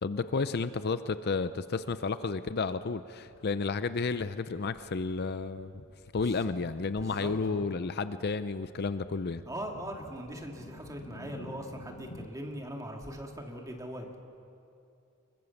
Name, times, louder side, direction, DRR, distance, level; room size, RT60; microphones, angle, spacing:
voice 1, 0.0-5.7 6.1-9.4, left 4 dB, 45° left, 12 dB, 0.5 m, -32 dB
sound 1, 3.0-4.3 4.6-6.3 6.6-7.5 7.8-12.3, left 2 dB, 80° left, 1.2 m, -51 dB
voice 2, 7.0-7.7 9.5-14.2, right 1 dB, 15° right, 2 dB, 2.3 m, -41 dB
24.5 x 22.5 x 7.1 m, 2.6 s
head